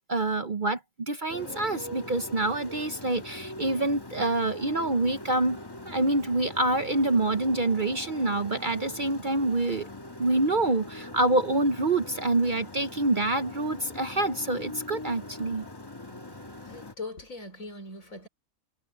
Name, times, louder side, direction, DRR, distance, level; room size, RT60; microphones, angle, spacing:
voice 1, 0.1-5.6 5.9-9.9 10.2-15.6, right 2 dB, 40° right, 0.9 m, -26 dB
Motorcycle, 1.3-16.9, left 1 dB, 20° left, 1.4 m, -42 dB
voice 2, 16.6-18.3, left 2 dB, 70° left, 4.8 m, -40 dB
omnidirectional pair, 1.5 m